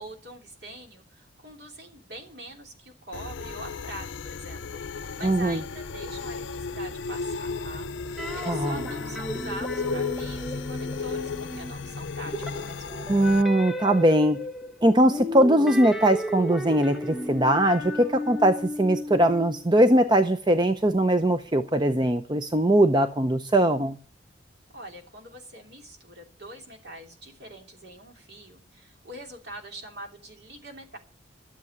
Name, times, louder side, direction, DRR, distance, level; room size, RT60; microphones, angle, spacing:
voice 1, 0.0-12.9 24.7-31.0, right 1 dB, 55° right, 2 dB, 3.0 m, -44 dB
sound 1, 3.1-13.4, left 4 dB, 80° left, 0.6 m, -34 dB
voice 2, 5.2-5.6 8.4-8.8 13.1-14.4 14.8-24.0, right 1 dB, 25° right, 8 dB, 0.7 m, -21 dB
sound 2, 8.2-11.9 12.2-20.0, equal, ahead, 1.3 m, -34 dB
13.5 x 7.7 x 9.6 m, 0.43 s
head